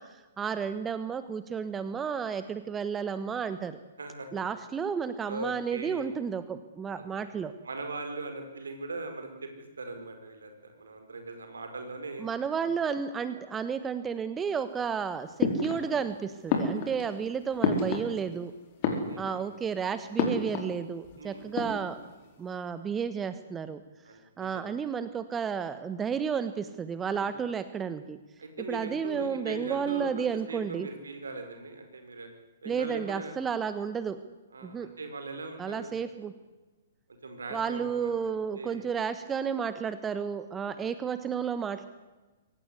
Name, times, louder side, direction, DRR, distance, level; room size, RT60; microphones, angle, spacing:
voice 1, 0.0-3.8 4.3-7.5 12.2-18.5 19.2-22.1 22.4-23.8 24.4-28.2 28.7-30.9 32.6-34.2 34.6-34.9 35.6-36.3 37.5-41.9, right 6 dB, 15° right, 12 dB, 1.2 m, -32 dB
voice 2, 4.0-4.4 5.3-6.1 7.2-7.3 7.6-9.5 9.8-12.3 16.8-17.1 18.9-19.3 21.2-21.5 24.0-24.7 27.0-27.3 28.4-32.3 32.6-33.4 34.5-35.9 37.1-38.1 38.5-38.8 40.6-40.8, right 3 dB, 70° right, 6 dB, 5.1 m, -40 dB
sound 1, 15.4-16.1 16.5-18.4 18.7-19.6 20.2-20.8 21.0-21.1 21.4-22.1, left 5 dB, 40° left, 4.7 m, -30 dB
23.5 x 18.0 x 9.8 m, 1.2 s
figure-of-eight pair, 115°, 0 cm